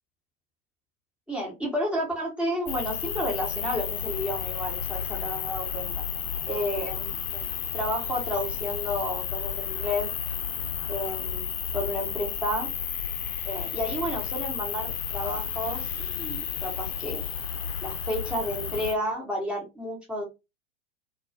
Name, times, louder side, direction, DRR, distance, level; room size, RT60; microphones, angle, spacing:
voice 1, 1.3-5.9 6.5-10.1 10.9-12.7 13.4-17.3 17.8-20.2, equal, 5° right, -3 dB, 0.8 m, -31 dB
sound 1, 2.7-18.9, left 8 dB, 50° left, 0.6 m, -32 dB
2.3 x 2.2 x 2.6 m, 0.25 s
hypercardioid pair, 100°, 40 cm